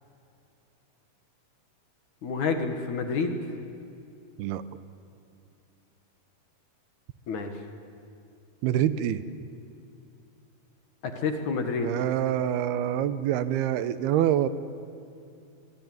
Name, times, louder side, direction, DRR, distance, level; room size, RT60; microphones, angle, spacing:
voice 1, 2.2-3.4 7.3-7.5 11.2-11.9, left 4 dB, 55° left, 5 dB, 2.8 m, -28 dB
voice 2, 8.6-9.2 11.8-14.5, right 11 dB, 90° right, 13 dB, 2.9 m, -26 dB
24.5 x 22.5 x 9.5 m, 2.6 s
omnidirectional pair, 4.4 m